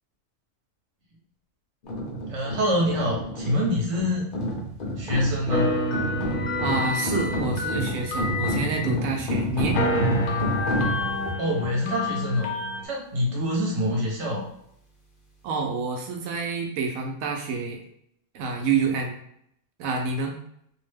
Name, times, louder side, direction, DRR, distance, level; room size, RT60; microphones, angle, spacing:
sound 1, 1.8-11.3, right 1 dB, 50° left, 0.8 m, -29 dB
voice 1, 2.3-4.3 5.0-5.7 11.4-12.5 12.8-14.5, equal, 60° right, -3 dB, 1.2 m, -25 dB
sound 2, 5.5-9.3 9.7-12.9, left 2 dB, 80° left, 1.0 m, -28 dB
voice 2, 6.6-9.8 15.4-17.8 18.3-19.2 19.8-20.4, right 4 dB, 90° right, 3 dB, 1.0 m, -28 dB
2.8 x 2.0 x 3.3 m, 0.73 s
omnidirectional pair, 1.4 m